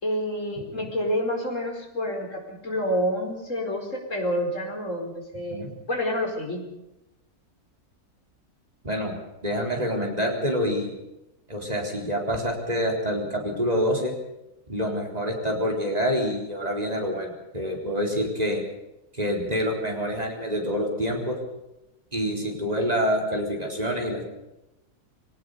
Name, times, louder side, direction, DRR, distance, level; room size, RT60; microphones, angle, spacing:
voice 1, 0.0-6.6, equal, 55° left, 1 dB, 5.1 m, -28 dB
voice 2, 8.8-9.2 9.4-10.9 11.5-14.1 14.7-18.6 19.1-21.4 22.1-24.3, equal, 25° right, 0 dB, 4.3 m, -27 dB
22.5 x 19.0 x 6.8 m, 0.93 s
omnidirectional pair, 1.6 m